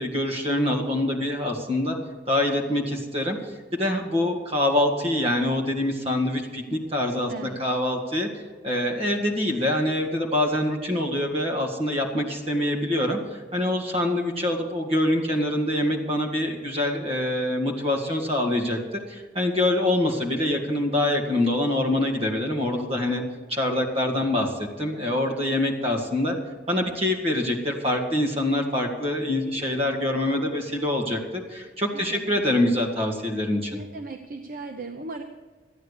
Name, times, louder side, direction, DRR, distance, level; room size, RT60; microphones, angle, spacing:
voice 1, 0.0-2.0 2.3-3.4 3.7-8.3 8.6-13.2 13.5-18.8 19.1-23.2 23.5-26.4 26.7-33.8, left 1 dB, 30° right, 1 dB, 2.0 m, -25 dB
voice 2, 7.3-7.6 31.9-32.4 33.7-35.2, right 3 dB, 45° right, 6 dB, 0.7 m, -37 dB
13.0 x 9.2 x 6.6 m, 1.4 s
head